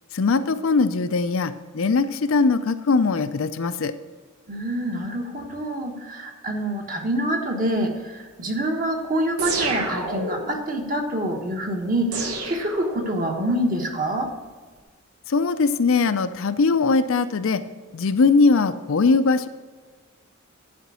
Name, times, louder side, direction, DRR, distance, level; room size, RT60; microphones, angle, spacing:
voice 1, 0.1-3.9 15.3-17.6 17.9-19.5, left 4 dB, 60° left, 11 dB, 0.5 m, -20 dB
voice 2, 4.5-14.3, right 1 dB, 35° right, 2 dB, 1.3 m, -26 dB
sound 1, 9.4-10.6 12.1-13.4, right 2 dB, 85° right, 1.4 m, -29 dB
11.0 x 5.1 x 6.2 m, 1.5 s
head